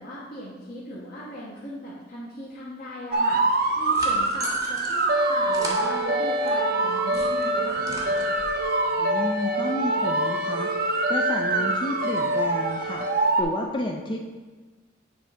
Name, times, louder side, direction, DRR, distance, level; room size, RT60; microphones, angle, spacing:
voice 1, 0.0-3.4 3.8-8.3, left 1 dB, 45° left, -8 dB, 1.1 m, -38 dB
sound 1, 3.1-13.4, right 2 dB, 50° right, 0.6 m, -24 dB
sound 2, 3.5-6.6 6.9-8.7, right 1 dB, 15° right, 0.8 m, -39 dB
voice 2, 9.0-10.7 11.1-13.1 13.4-14.3, left 1 dB, 25° left, 1 dB, 0.4 m, -31 dB
9.4 x 3.3 x 5.0 m, 1.3 s
head